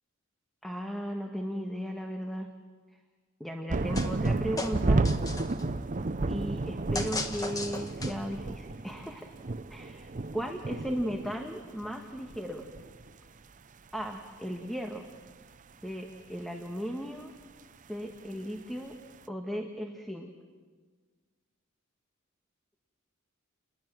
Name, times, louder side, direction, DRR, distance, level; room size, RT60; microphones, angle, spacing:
voice 1, 0.6-2.5 3.4-5.1 6.3-9.3 9.7-12.7 13.9-15.0 15.8-17.3 17.9-18.9 19.3-20.3, equal, ahead, 3 dB, 1.4 m, -36 dB
sound 1, 3.7-11.5 11.8-11.9 12.2-13.1 14.0-14.1, right 2 dB, 40° right, 0.6 m, -31 dB
sound 2, 3.9-4.3 4.6-5.6 6.9-8.4, left 2 dB, 15° left, 1.5 m, -36 dB
29.5 x 21.0 x 7.5 m, 1.5 s
head